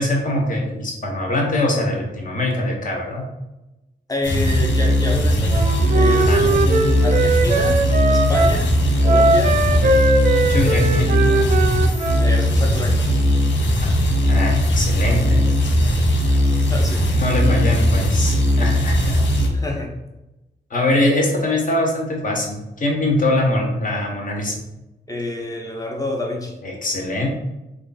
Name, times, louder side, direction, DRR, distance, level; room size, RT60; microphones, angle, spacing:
voice 1, 0.0-3.2 6.1-6.4 10.5-11.5 14.3-15.4 15.7-15.9 17.1-19.2 20.7-24.5 26.6-27.3, left 1 dB, 45° left, 0 dB, 0.9 m, -22 dB
voice 2, 4.1-7.8 8.1-8.7 9.0-10.2 12.2-13.1 16.7-17.0 19.4-19.9 25.1-26.6, left 1 dB, 20° left, 1 dB, 0.6 m, -28 dB
sound 1, 4.2-19.5, equal, 85° left, 0.6 m, -18 dB
Wind instrument woodwind instrument, 5.5-8.6 9.0-12.3, right 3 dB, 50° right, 0.4 m, -20 dB
3.1 x 2.3 x 4.0 m, 0.96 s
wide cardioid pair, 115°, 18 cm